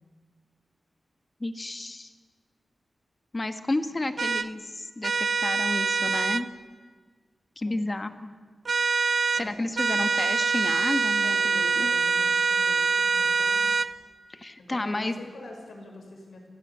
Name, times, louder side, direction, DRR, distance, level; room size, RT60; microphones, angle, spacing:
voice 1, 1.4-2.1 3.3-6.5 7.6-8.3 9.3-11.9 14.3-15.2, left 2 dB, 25° left, 9 dB, 1.4 m, -31 dB
sound 1, 4.2-4.5 5.0-6.4 8.7-9.5 9.8-13.9, right 4 dB, 55° right, 0.6 m, -24 dB
voice 2, 11.2-13.7 14.6-16.5, left 2 dB, 75° left, 2 dB, 6.0 m, -44 dB
29.0 x 15.5 x 8.5 m, 1.5 s
wide cardioid pair, 155°, 0 cm